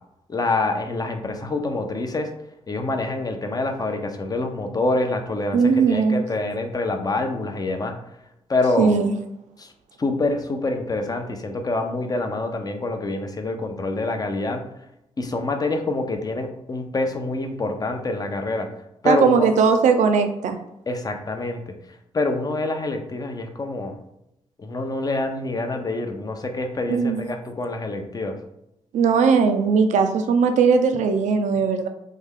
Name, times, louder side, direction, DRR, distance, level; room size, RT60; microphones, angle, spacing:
voice 1, 0.3-2.3 2.7-7.9 8.5-8.9 9.6-9.7 10.0-14.7 15.2-18.7 19.0-19.5 20.9-21.6 22.1-24.0 24.6-28.4, left 2 dB, 30° left, 5 dB, 0.6 m, -26 dB
voice 2, 5.5-6.2 8.8-9.1 19.0-20.6 26.9-27.2 28.9-31.9, right 5 dB, 80° right, 6 dB, 0.4 m, -18 dB
3.2 x 2.3 x 3.6 m, 0.84 s
cardioid pair, 65°, 12 cm